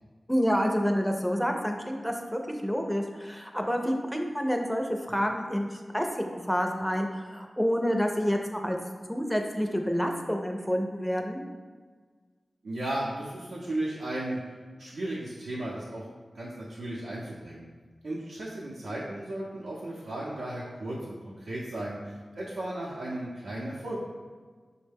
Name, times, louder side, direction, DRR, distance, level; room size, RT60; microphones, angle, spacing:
voice 1, 0.3-8.8 9.1-11.4, equal, ahead, 2 dB, 0.5 m, -28 dB
voice 2, 12.6-14.4 14.8-16.1 16.3-17.7 18.0-24.1, right 1 dB, 90° right, -7 dB, 0.6 m, -35 dB
5.3 x 2.1 x 3.4 m, 1.5 s
wide cardioid pair, 70°, 0 cm